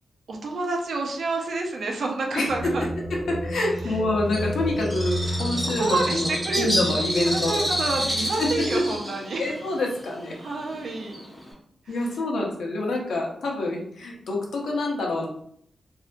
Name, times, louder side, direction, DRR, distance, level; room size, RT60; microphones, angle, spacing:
voice 1, 0.3-2.9 5.3-6.7 7.3-9.4 10.4-11.2, right 3 dB, 65° right, 2 dB, 0.5 m, -29 dB
voice 2, 2.3-2.7 3.1-7.6 8.4-8.8 9.4-10.3 11.9-15.3, left 2 dB, 85° left, -1 dB, 0.7 m, -27 dB
sound 1, 2.5-9.0, equal, 30° left, 1.0 m, -32 dB
Bird, 4.3-11.5, equal, 10° right, 0.9 m, -30 dB
2.6 x 2.2 x 2.5 m, 0.65 s
wide cardioid pair, 125°, 0 cm